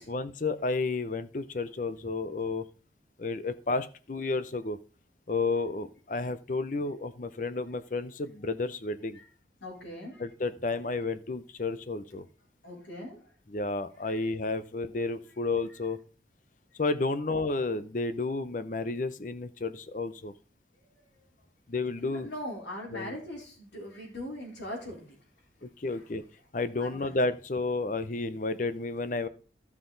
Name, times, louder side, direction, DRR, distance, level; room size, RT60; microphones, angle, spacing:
voice 1, 0.0-2.6 3.2-4.8 5.3-9.2 10.2-12.2 13.5-16.0 16.8-20.3 21.7-22.3 22.9-23.2 25.6-26.2 26.5-29.3, left 3 dB, 45° left, 13 dB, 0.6 m, -31 dB
voice 2, 9.6-10.2 12.6-13.2 14.1-14.2 22.0-25.1 25.9-26.0 26.8-27.2, left 1 dB, 80° left, -1 dB, 3.8 m, -40 dB
13.0 x 5.9 x 3.9 m, 0.38 s
head